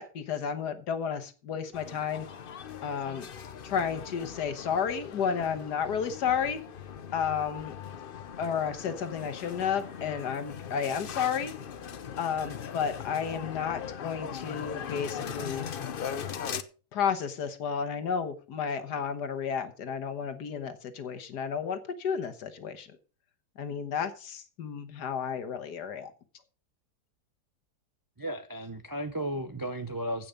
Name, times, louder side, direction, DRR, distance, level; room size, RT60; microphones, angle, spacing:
voice 1, 0.0-2.3 2.8-3.3 3.6-6.6 7.1-7.8 8.4-11.5 12.2-15.7 16.9-23.0 23.6-26.1, left 7 dB, 80° left, 1.8 m, -32 dB
sound 1, 1.7-16.6, left 7 dB, 50° left, 0.6 m, -40 dB
voice 2, 28.2-30.3, right 1 dB, 30° right, 0.3 m, -34 dB
15.5 x 5.9 x 5.1 m
omnidirectional pair, 1.8 m